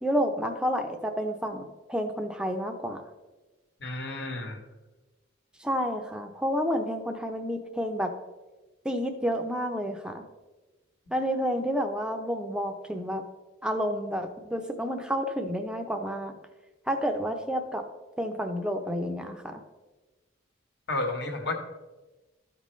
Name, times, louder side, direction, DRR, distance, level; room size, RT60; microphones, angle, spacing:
voice 1, 0.0-3.0 5.6-8.1 8.8-10.2 11.1-13.2 13.6-16.3 16.9-17.8 18.2-19.6, equal, 5° right, 5 dB, 0.6 m, -30 dB
voice 2, 3.8-4.6 20.9-21.5, left 2 dB, 55° left, 3 dB, 1.2 m, -31 dB
13.0 x 5.3 x 3.2 m, 1.2 s
head